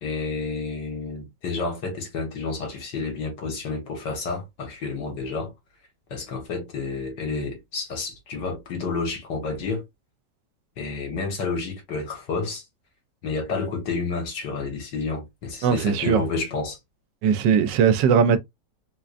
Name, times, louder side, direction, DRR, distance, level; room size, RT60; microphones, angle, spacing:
voice 1, 0.0-5.5 6.1-9.8 10.8-12.6 13.2-16.8, left 4 dB, 75° left, 2.1 m, -30 dB
voice 2, 15.6-16.2 17.2-18.4, right 7 dB, 80° right, 1.2 m, -19 dB
3.7 x 3.2 x 2.4 m
omnidirectional pair, 1.9 m